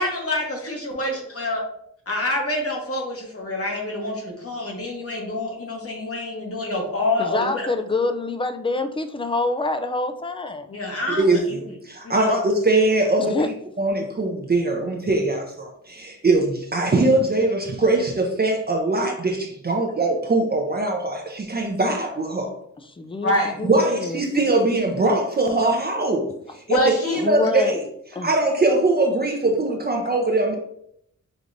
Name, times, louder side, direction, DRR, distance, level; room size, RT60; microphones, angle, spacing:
voice 1, 0.0-1.6 2.1-7.7 10.7-11.7 12.0-12.4 23.2-23.5 26.7-27.2, left 1 dB, 50° left, 0 dB, 1.2 m, -26 dB
voice 2, 7.2-10.7 13.2-13.5 23.0-24.2 27.1-27.8 28.2-28.3 30.1-30.2, left 2 dB, 20° left, 8 dB, 0.3 m, -26 dB
voice 3, 11.2-22.6 23.7-27.8 28.2-30.5, right 2 dB, 30° right, 2 dB, 0.6 m, -22 dB
5.1 x 3.0 x 2.6 m, 0.72 s
wide cardioid pair, 90°, 31 cm